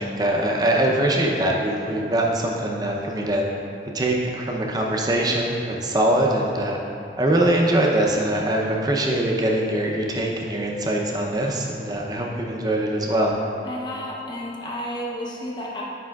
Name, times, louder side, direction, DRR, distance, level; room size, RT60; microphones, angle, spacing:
voice 1, 0.0-3.4 3.9-6.8 7.2-13.4, right 1 dB, 20° right, -1 dB, 0.6 m, -22 dB
voice 2, 13.6-15.8, equal, 25° left, -4 dB, 0.8 m, -32 dB
9.9 x 5.4 x 2.4 m, 2.7 s
head